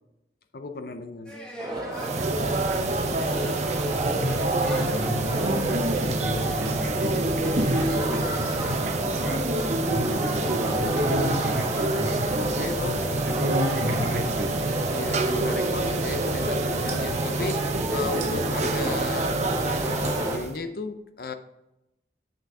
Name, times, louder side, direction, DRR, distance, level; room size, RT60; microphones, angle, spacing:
voice 1, 0.5-1.4 12.4-13.3 14.8-21.3, left 3 dB, 55° left, 0.6 m, -34 dB
sound 1, 1.2-13.9, equal, 5° left, 1.4 m, -43 dB
sound 2, 1.6-20.4, right 2 dB, 20° right, 1.0 m, -32 dB
sound 3, 1.9-20.6, right 2 dB, 40° right, 0.7 m, -27 dB
voice 2, 3.9-9.5 9.9-14.8, equal, 65° right, 1.8 m, -32 dB
7.5 x 6.1 x 3.6 m
head